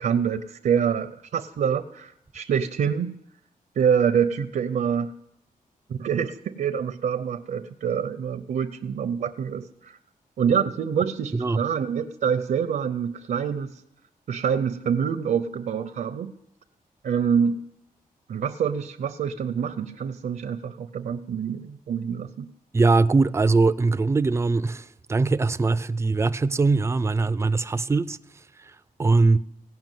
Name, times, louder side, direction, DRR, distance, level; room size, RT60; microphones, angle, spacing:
voice 1, 0.0-3.2 3.8-5.1 5.9-10.0 10.4-13.8 14.3-16.3 17.0-17.6 18.3-22.5, right 7 dB, 65° right, 0.6 m, -26 dB
voice 2, 22.7-28.2 29.0-29.4, right 3 dB, 20° right, 0.4 m, -21 dB
16.5 x 5.8 x 9.1 m
wide cardioid pair, 130°, 15 cm